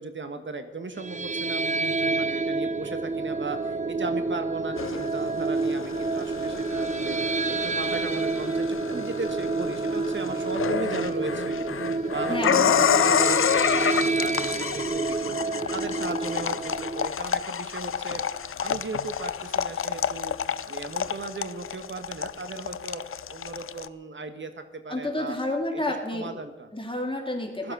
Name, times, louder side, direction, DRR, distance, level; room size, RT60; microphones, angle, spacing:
voice 1, 0.0-7.2 7.5-11.6 12.0-15.4 15.7-18.2 18.6-20.3 20.7-23.0 23.3-25.4 26.1-26.7 27.6-27.7, right 3 dB, 65° right, 8 dB, 1.5 m, -36 dB
sound 1, 1.0-17.1, right 3 dB, 35° right, 0.7 m, -28 dB
sound 2, 4.8-23.9, left 8 dB, 80° left, 0.5 m, -29 dB
voice 2, 12.3-12.8 24.9-26.3 26.7-27.7, left 1 dB, 25° left, 0 dB, 3.3 m, -30 dB
15.5 x 12.0 x 6.1 m, 1.3 s
wide cardioid pair, 80°, 21 cm